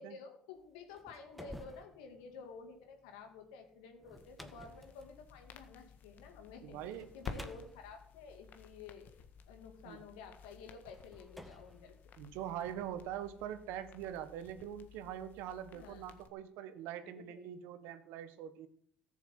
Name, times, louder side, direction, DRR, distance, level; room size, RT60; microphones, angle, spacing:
voice 1, 0.0-9.2 9.5-11.9 15.7-16.0 17.0-17.5, left 5 dB, 80° left, 4 dB, 2.8 m, -52 dB
sound 1, 0.7-6.3 6.9-9.4 10.2-10.3 10.9-12.6, equal, ahead, 1.6 m, -54 dB
sound 2, 4.2-16.3, left 6 dB, 55° left, 1.6 m, -53 dB
voice 2, 6.6-7.5 9.8-10.0 12.2-18.7, right 10 dB, 70° right, 11 dB, 1.4 m, -43 dB
14.0 x 7.2 x 7.6 m, 0.64 s
hypercardioid pair, 75°, 4 cm